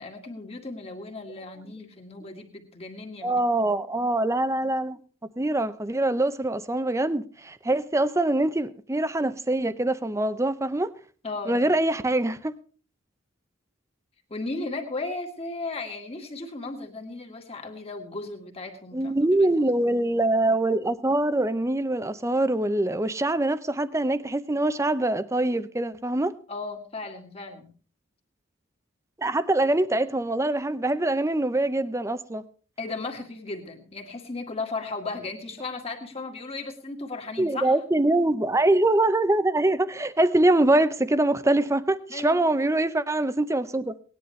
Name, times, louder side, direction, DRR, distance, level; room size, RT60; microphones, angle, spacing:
voice 1, 0.0-3.4 11.2-11.7 14.3-19.1 19.4-19.5 26.5-27.7 32.8-37.8 42.1-42.4, left 3 dB, 30° left, 1.9 m, -35 dB
voice 2, 3.2-5.0 5.4-10.9 11.5-12.5 18.9-26.3 29.2-32.4 37.4-43.9, right 2 dB, 15° right, 0.6 m, -24 dB
18.5 x 10.5 x 3.3 m
head